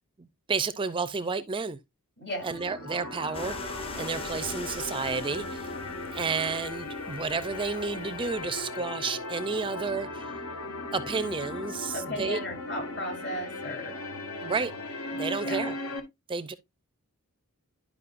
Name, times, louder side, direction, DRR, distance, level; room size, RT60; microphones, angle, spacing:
voice 1, 0.2-1.8 2.4-5.7 6.1-10.3 10.9-12.4 14.4-14.7 15.1-15.7 16.3-16.5, right 4 dB, 25° right, 0.4 m, -31 dB
voice 2, 2.2-2.5 11.9-14.0 15.4-15.7, left 1 dB, 55° left, 2.9 m, -36 dB
sound 1, 2.3-16.0, left 2 dB, 80° left, 1.5 m, -37 dB
sound 2, 3.3-9.5, left 3 dB, 25° left, 0.8 m, -42 dB
11.0 x 5.2 x 2.5 m
head